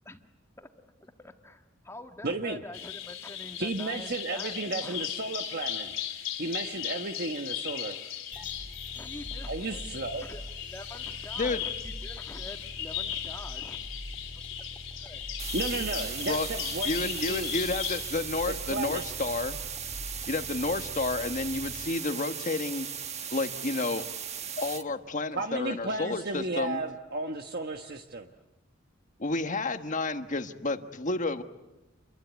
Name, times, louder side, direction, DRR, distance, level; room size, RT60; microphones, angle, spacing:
voice 1, 1.0-5.0 8.9-9.8 10.2-13.8 14.3-14.4 15.0-15.2, left 2 dB, 15° left, 5 dB, 1.7 m, -46 dB
voice 2, 2.2-2.6 3.6-8.0 9.5-10.2 15.5-17.6 18.5-19.0 25.3-28.3, right 2 dB, 55° right, 5 dB, 1.4 m, -34 dB
Bird vocalization bird call bird song, 2.7-18.2, left 10 dB, 80° left, 3.3 m, -37 dB
sound 1, 8.3-21.8, equal, 10° right, 2.4 m, -44 dB
sound 2, 15.4-24.8, right 8 dB, 35° right, 1.3 m, -38 dB
voice 3, 16.8-19.6 20.3-22.9 23.3-24.0 24.6-26.8 29.2-31.4, left 2 dB, 40° left, 8 dB, 1.4 m, -31 dB
29.0 x 23.5 x 8.3 m, 1.1 s
head